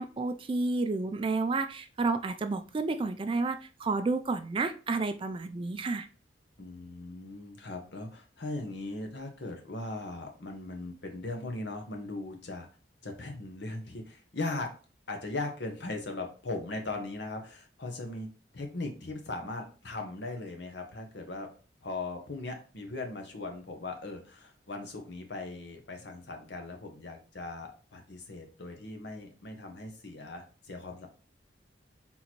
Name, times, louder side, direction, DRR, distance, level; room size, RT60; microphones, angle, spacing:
voice 1, 0.0-6.1, right 3 dB, 30° right, 8 dB, 0.3 m, -31 dB
voice 2, 6.6-12.7 13.0-14.7 15.1-18.3 18.5-21.5 21.8-31.1, left 2 dB, 65° left, 3 dB, 1.0 m, -39 dB
3.8 x 3.0 x 4.2 m, 0.37 s
head